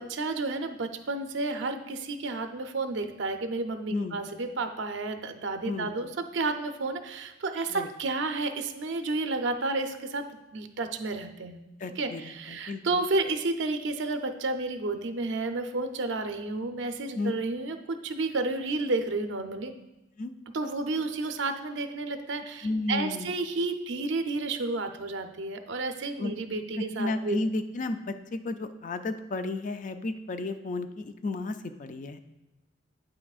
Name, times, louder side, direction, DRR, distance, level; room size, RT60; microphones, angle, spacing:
voice 1, 0.0-10.2 10.5-11.6 12.0-19.7 20.5-27.4, right 3 dB, 70° right, 7 dB, 0.6 m, -31 dB
voice 2, 11.8-13.0 17.1-17.3 20.2-20.3 22.6-23.3 26.2-26.3 26.8-32.2, left 2 dB, 40° left, 9 dB, 0.4 m, -33 dB
8.8 x 5.9 x 2.4 m, 0.95 s
head